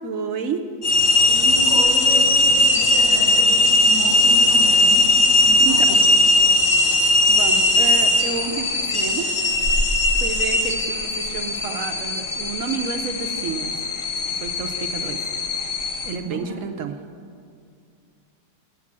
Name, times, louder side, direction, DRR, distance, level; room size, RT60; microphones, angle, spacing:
voice 1, 0.0-0.6 5.6-6.0 7.3-9.3 10.2-13.8 14.3-15.2 16.0-16.9, right 6 dB, 65° right, 6 dB, 0.8 m, -30 dB
Whistling of Kettle, 0.8-16.1, left 1 dB, 60° left, 0.5 m, -19 dB
voice 2, 1.3-5.1 5.4-5.8 6.1-6.6 16.2-16.6, left 1 dB, 20° right, -6 dB, 3.4 m, -33 dB
9.2 x 8.5 x 7.3 m, 2.2 s
omnidirectional pair, 2.0 m